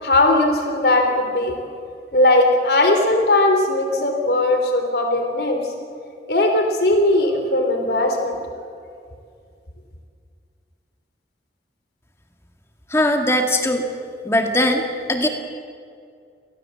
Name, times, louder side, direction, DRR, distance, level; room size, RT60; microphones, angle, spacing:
voice 1, 0.0-1.6 2.1-5.7 6.3-8.4, left 2 dB, 65° left, 3 dB, 3.3 m, -18 dB
voice 2, 12.9-13.9 14.2-15.3, left 1 dB, 15° left, 4 dB, 2.0 m, -20 dB
28.0 x 18.0 x 7.7 m, 2.3 s
head